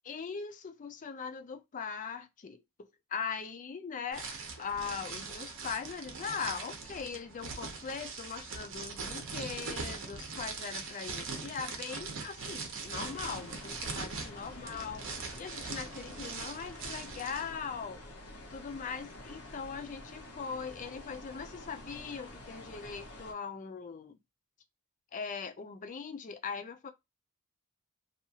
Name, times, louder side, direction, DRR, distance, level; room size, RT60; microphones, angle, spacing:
voice 1, 0.0-4.3 4.6-15.0 15.4-18.0 18.5-24.2 25.1-26.9, left 6 dB, 35° left, 0.4 m, -40 dB
sound 1, 4.1-17.5, right 4 dB, 60° right, 0.7 m, -41 dB
sound 2, 13.0-23.3, left 1 dB, 85° left, 0.8 m, -48 dB
2.7 x 2.4 x 2.7 m
head